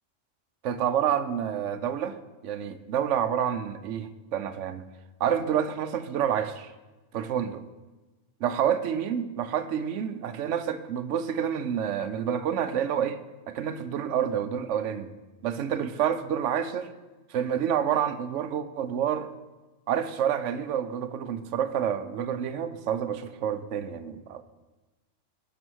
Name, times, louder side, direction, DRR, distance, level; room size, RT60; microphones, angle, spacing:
voice 1, 0.6-2.2 2.4-4.8 5.2-6.7 7.1-7.6 8.4-13.2 13.5-15.1 15.4-16.9 17.3-19.3 19.9-24.4, right 9 dB, 75° right, 11 dB, 1.0 m, -28 dB
9.4 x 6.1 x 6.2 m, 1.2 s
omnidirectional pair, 1.3 m